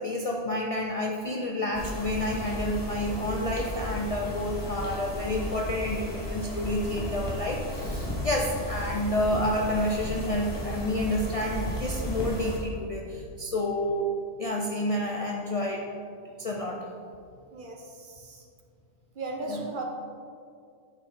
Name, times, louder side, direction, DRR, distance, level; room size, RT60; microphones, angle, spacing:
voice 1, 0.0-14.1 14.4-15.8 16.2-16.9 19.5-19.6, left 1 dB, 45° left, -1 dB, 0.4 m, -29 dB
sound 1, 1.7-12.6, left 1 dB, 25° left, 1.0 m, -34 dB
voice 2, 17.5-18.5 19.2-19.8, right 2 dB, 50° right, 1 dB, 0.9 m, -37 dB
8.7 x 4.4 x 3.7 m, 2.3 s
omnidirectional pair, 1.2 m